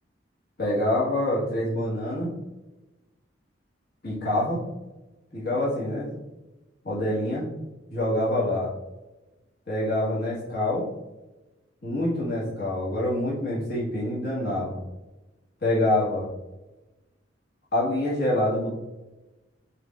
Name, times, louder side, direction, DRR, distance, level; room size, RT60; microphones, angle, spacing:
voice 1, 0.6-2.4 4.0-4.6 5.3-6.1 6.8-7.5 7.9-8.7 9.7-10.9 11.8-14.8 15.6-16.3 17.7-18.7, left 1 dB, 55° left, -7 dB, 1.6 m, -26 dB
5.1 x 4.3 x 2.4 m, 1.1 s
head